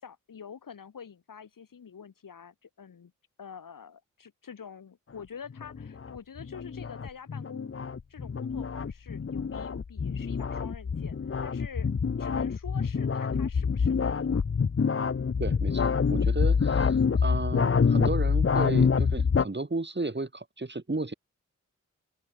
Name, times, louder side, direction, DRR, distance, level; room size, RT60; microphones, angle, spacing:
voice 1, 0.0-3.1 3.4-7.7 8.1-11.2 11.4-11.9 12.2-14.4, left 7 dB, 85° left, 4.4 m, -46 dB
sound 1, 5.5-19.5, left 5 dB, 40° left, 0.9 m, -26 dB
voice 2, 15.4-21.1, right 2 dB, 35° right, 6.7 m, -34 dB
open air
cardioid pair, 50°, 32 cm